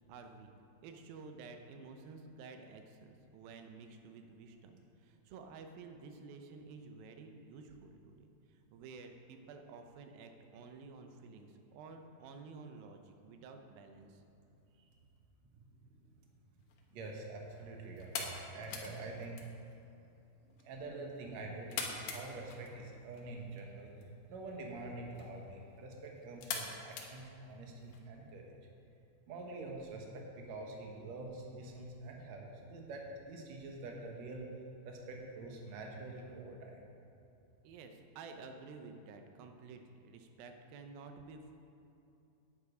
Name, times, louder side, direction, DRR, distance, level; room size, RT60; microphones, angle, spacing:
voice 1, 0.1-0.5 0.8-14.2 37.6-41.6, right 4 dB, 80° right, 5 dB, 2.6 m, -52 dB
sound 1, 16.6-28.0, left 5 dB, 65° left, 2.4 m, -47 dB
voice 2, 16.9-19.4 20.4-28.6 29.3-34.5 34.9-36.8, right 2 dB, 60° right, 1 dB, 2.1 m, -46 dB
10.5 x 8.9 x 4.9 m, 2.9 s
omnidirectional pair, 4.1 m